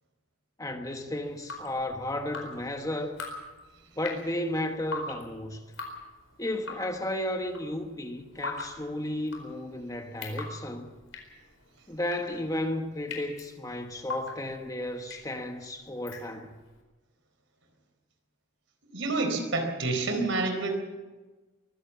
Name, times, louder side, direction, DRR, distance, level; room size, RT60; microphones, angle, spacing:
voice 1, 0.6-3.2 4.0-5.6 6.4-10.9 11.9-16.5, left 1 dB, 15° left, 1.2 m, -33 dB
Drip, 1.2-16.7, left 3 dB, 70° left, 4.5 m, -42 dB
voice 2, 18.9-20.7, right 3 dB, 70° right, 4.2 m, -28 dB
23.0 x 16.0 x 7.3 m
head